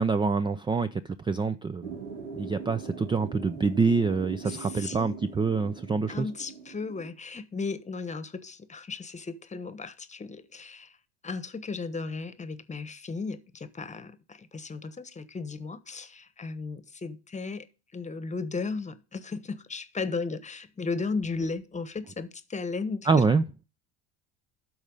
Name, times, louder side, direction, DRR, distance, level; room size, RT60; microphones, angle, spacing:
voice 1, 0.0-2.0 2.3-6.3 23.1-23.4, right 4 dB, 15° right, 0.4 m, -26 dB
sound 1, 1.8-7.1, right 6 dB, 90° right, 2.1 m, -42 dB
voice 2, 4.4-5.2 6.1-11.0 11.2-17.6 17.9-23.1, left 4 dB, 20° left, 1.1 m, -35 dB
12.5 x 4.2 x 5.4 m
supercardioid pair, 85°, 35 cm